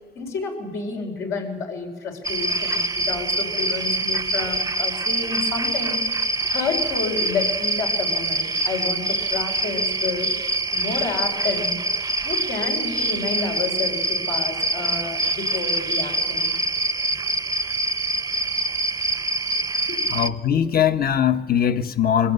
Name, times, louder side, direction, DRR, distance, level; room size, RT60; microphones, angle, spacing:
voice 1, 0.1-6.0 6.5-10.3 10.7-11.8 12.2-16.5 19.9-20.2, left 4 dB, 85° left, 1 dB, 4.8 m, -30 dB
sound 1, 2.2-20.3, right 2 dB, 15° right, 0.6 m, -25 dB
voice 2, 20.1-22.3, left 9 dB, 50° left, 9 dB, 1.1 m, -21 dB
22.5 x 17.0 x 8.0 m, 1.4 s
cardioid pair, 90°, 20 cm